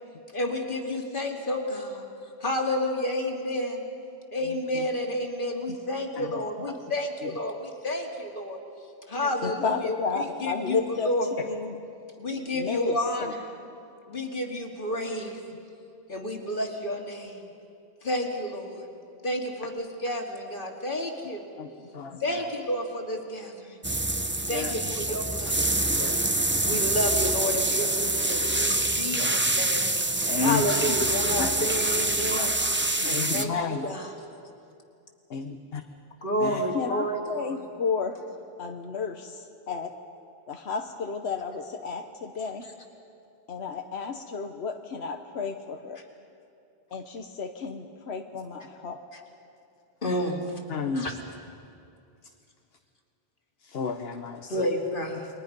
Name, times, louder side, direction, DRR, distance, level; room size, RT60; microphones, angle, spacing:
voice 1, 0.3-2.0 2.4-3.8 4.3-8.6 9.1-11.3 12.2-13.4 14.1-15.4 16.1-17.5 18.0-18.8 19.2-21.4 22.2-23.8 24.5-25.8 26.6-29.9 30.2-32.5 33.0-34.1 36.2-37.6 50.0-50.4 50.9-51.2 54.5-55.3, left 1 dB, 55° left, 1 dB, 2.5 m, -30 dB
voice 2, 4.4-4.9 9.4-11.8 12.5-13.3 21.8-21.9 26.6-26.8 33.0-33.1 33.8-33.9 36.7-38.2 38.6-39.9 40.5-42.6 43.5-46.0 46.9-49.0, left 5 dB, 85° left, 5 dB, 1.3 m, -32 dB
sound 1, 23.8-33.4, right 2 dB, 15° right, 0.6 m, -26 dB
voice 3, 30.3-30.8 31.4-31.7 32.4-32.5 33.1-33.8 35.3-35.8 36.4-36.6 50.7-51.1 53.7-54.5, left 5 dB, 70° left, 6 dB, 1.1 m, -31 dB
29.5 x 22.5 x 5.3 m, 2.5 s
omnidirectional pair, 1.1 m